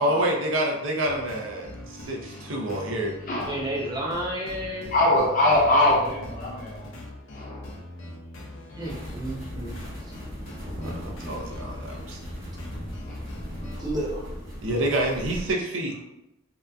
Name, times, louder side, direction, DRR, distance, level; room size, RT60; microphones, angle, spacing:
voice 1, 0.0-3.2 10.8-12.2 14.6-15.9, right 1 dB, 85° right, 0 dB, 0.5 m, -27 dB
sound 1, 1.0-13.9, left 1 dB, 85° left, 0.5 m, -42 dB
voice 2, 2.3-2.6 3.3-3.6 4.9-6.9 7.3-7.7 8.9-9.0 10.7-11.3 13.1-13.3 13.6-13.8, left 1 dB, 45° left, -3 dB, 0.7 m, -24 dB
voice 3, 3.5-4.9 8.8-9.8 13.8-14.3, right 1 dB, 20° right, -3 dB, 0.6 m, -31 dB
sound 2, 8.8-15.5, equal, 50° right, 1.0 m, -38 dB
2.7 x 2.4 x 2.2 m, 0.87 s
head